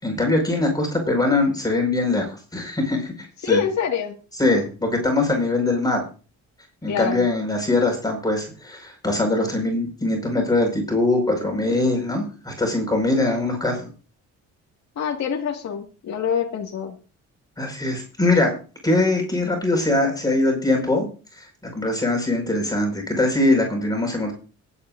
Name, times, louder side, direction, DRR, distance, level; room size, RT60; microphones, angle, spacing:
voice 1, 0.0-2.3 2.5-3.6 4.4-6.0 6.8-13.9 17.6-18.5 18.8-21.1 21.4-21.5 21.7-24.3, left 2 dB, 15° left, 1 dB, 5.1 m, -22 dB
voice 2, 3.4-4.2 6.9-7.3 15.0-16.9, left 7 dB, 65° left, 0 dB, 2.0 m, -25 dB
22.5 x 8.6 x 2.6 m, 0.35 s
cardioid pair, 90°, 30 cm